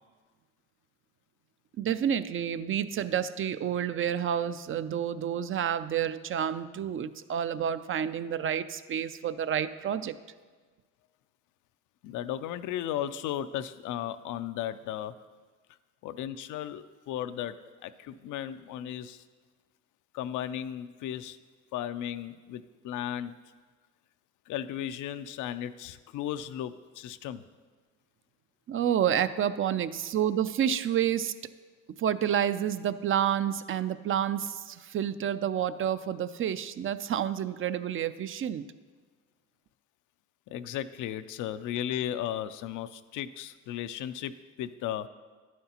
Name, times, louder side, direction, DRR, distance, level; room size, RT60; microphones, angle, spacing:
voice 1, 1.8-10.2 28.7-31.3 32.0-38.7, right 9 dB, 45° right, 13 dB, 0.4 m, -29 dB
voice 2, 12.0-15.1 16.0-17.6 17.8-19.2 20.1-21.4 21.7-23.3 24.5-27.5 40.5-45.1, left 11 dB, 85° left, 12 dB, 0.5 m, -35 dB
10.5 x 9.3 x 2.9 m, 1.4 s
cardioid pair, 90°, 30 cm